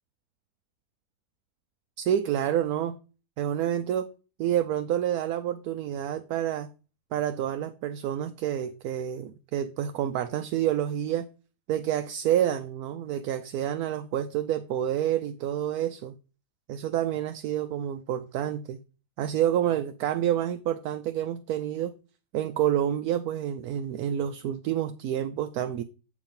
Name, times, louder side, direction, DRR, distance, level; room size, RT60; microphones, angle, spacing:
voice 1, 2.0-3.0 3.4-4.1 4.4-6.7 7.1-11.3 11.7-16.1 16.7-18.8 19.2-21.9 22.3-25.8, right 10 dB, 75° right, 1.1 m, -28 dB
8.4 x 4.9 x 5.2 m
omnidirectional pair, 1.6 m